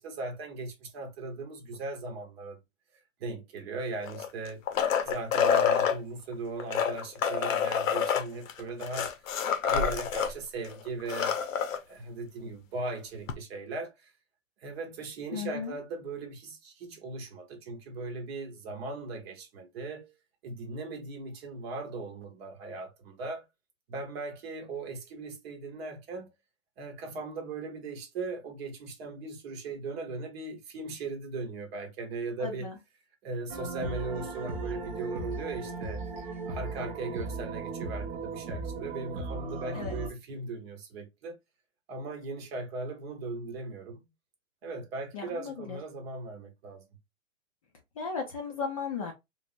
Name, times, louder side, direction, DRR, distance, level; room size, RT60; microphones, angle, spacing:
voice 1, 0.0-2.6 3.2-4.6 5.0-9.1 9.6-11.4 11.9-14.1 14.6-20.1 20.4-23.4 23.9-26.3 26.8-32.7 33.2-36.0 36.5-41.4 41.9-44.0 44.6-46.9, right 3 dB, 50° right, 0.9 m, -38 dB
sound 1, 4.0-6.0 6.6-10.3 10.6-10.7 11.0-11.8 13.3-13.4, left 7 dB, 75° left, 0.7 m, -27 dB
voice 2, 15.3-15.8 32.4-32.8 39.7-40.0 45.1-45.8 48.0-49.1, left 5 dB, 30° left, 0.3 m, -35 dB
sound 2, 33.5-40.1, right 3 dB, 25° right, 0.5 m, -37 dB
3.2 x 2.0 x 2.5 m
hypercardioid pair, 140°, 39 cm